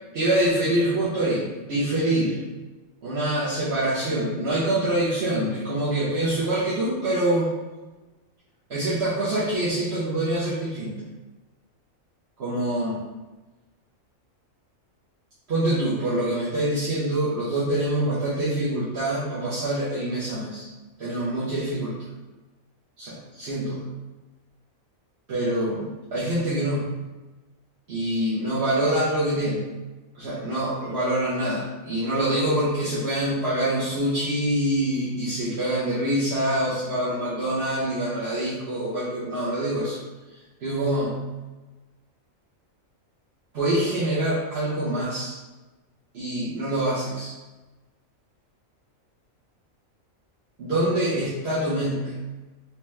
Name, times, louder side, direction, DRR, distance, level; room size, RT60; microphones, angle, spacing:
voice 1, 0.1-2.4 3.0-7.5 8.7-10.9 12.4-13.0 15.5-20.7 21.0-22.0 23.0-23.8 25.3-26.8 27.9-29.6 30.2-40.0 40.6-41.2 43.5-45.3 46.1-47.3 50.6-52.1, right 1 dB, 55° right, -10 dB, 1.1 m, -25 dB
3.3 x 3.0 x 3.3 m, 1.2 s
omnidirectional pair, 1.4 m